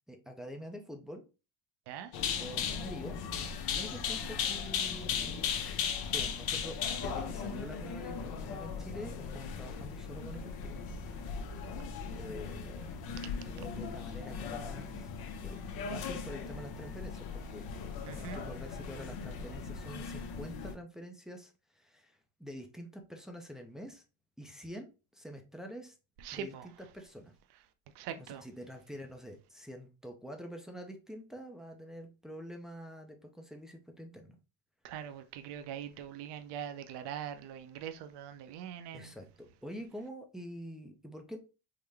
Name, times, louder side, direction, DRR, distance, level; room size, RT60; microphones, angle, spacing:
voice 1, 0.1-1.2 2.4-3.2 3.7-5.4 6.1-10.8 12.2-12.8 13.4-15.1 15.4-15.6 15.8-17.6 18.1-24.0 24.4-26.0 26.3-26.5 26.9-27.3 28.2-34.4 38.9-41.4, equal, ahead, 0.4 m, -46 dB
sound 1, 2.1-20.7, left 6 dB, 50° left, 0.7 m, -37 dB
voice 2, 18.1-18.4 26.2-26.7 27.9-28.4 34.8-39.1, right 9 dB, 55° right, 0.6 m, -42 dB
3.8 x 2.1 x 3.2 m
supercardioid pair, 105°, 49 cm